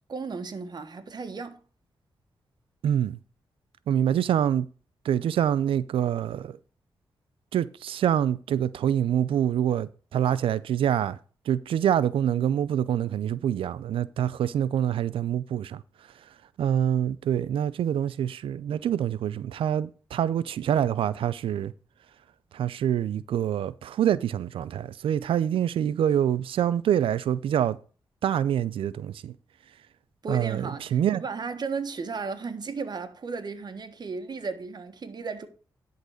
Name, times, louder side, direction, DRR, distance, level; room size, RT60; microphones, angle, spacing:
voice 1, 0.1-1.6 30.2-35.5, right 4 dB, 50° right, 1.4 m, -35 dB
voice 2, 2.8-3.2 3.9-4.7 5.0-6.6 7.5-11.2 11.5-15.8 16.6-21.7 22.5-27.8 28.2-29.3 30.3-31.2, right 10 dB, 90° right, 0.4 m, -26 dB
11.0 x 4.0 x 6.4 m
cardioid pair, 70°, 9 cm